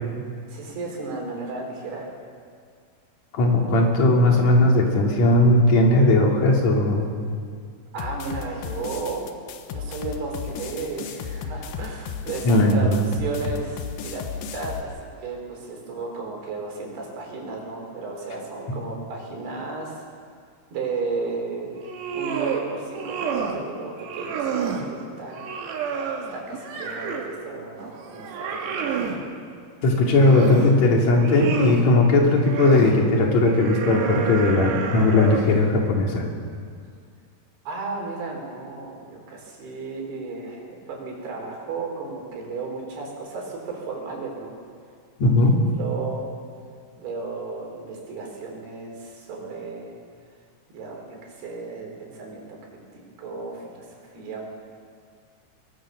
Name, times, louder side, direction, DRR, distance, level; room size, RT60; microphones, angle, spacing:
voice 1, 0.5-2.1 7.9-9.2 9.7-14.2 14.5-20.0 20.7-21.7 22.1-25.5 26.3-29.0 37.7-44.5 45.4-45.5 45.7-46.3 47.0-49.9 50.7-54.5, right 4 dB, 70° right, 0 dB, 5.9 m, -34 dB
voice 2, 3.3-7.1 12.5-13.1 29.8-36.2 45.2-45.6, left 2 dB, 45° left, 0 dB, 3.6 m, -18 dB
sound 1, 8.0-14.8, left 6 dB, 65° left, 2.6 m, -34 dB
sound 2, 21.7-22.6 22.9-23.6 24.0-24.9 25.3-27.4 27.8-29.2 29.9-30.7 31.1-31.9 32.3-32.9 33.4-35.6, right 6 dB, 90° right, 4.0 m, -29 dB
23.0 x 20.0 x 6.4 m, 2.1 s
omnidirectional pair, 4.7 m